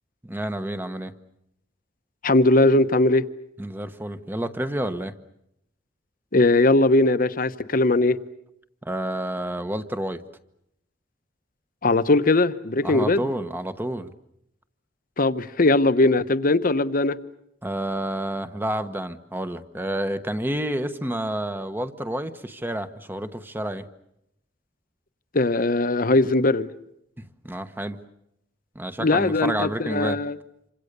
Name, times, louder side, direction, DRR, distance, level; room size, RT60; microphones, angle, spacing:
voice 1, 0.2-1.1 3.6-5.1 8.8-10.2 12.8-14.1 17.6-23.8 27.2-28.0 28.7-30.2, right 1 dB, 10° right, 1.1 m, -29 dB
voice 2, 2.2-3.3 6.3-8.2 11.8-13.3 15.2-17.2 25.3-26.7 29.0-30.4, left 2 dB, 50° left, 1.0 m, -20 dB
27.5 x 25.5 x 6.8 m
head